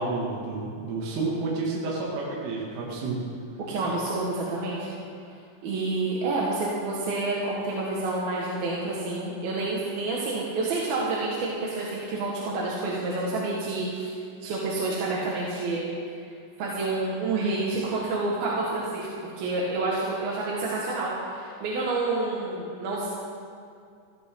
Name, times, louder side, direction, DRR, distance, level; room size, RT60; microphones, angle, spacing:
voice 1, 0.0-3.2, right 3 dB, 75° right, -5 dB, 4.9 m, -30 dB
voice 2, 3.7-4.9 5.6-14.1 14.4-15.9 16.6-23.1, right 2 dB, 60° right, -5 dB, 3.1 m, -28 dB
19.5 x 14.5 x 3.9 m, 2.4 s
omnidirectional pair, 5.7 m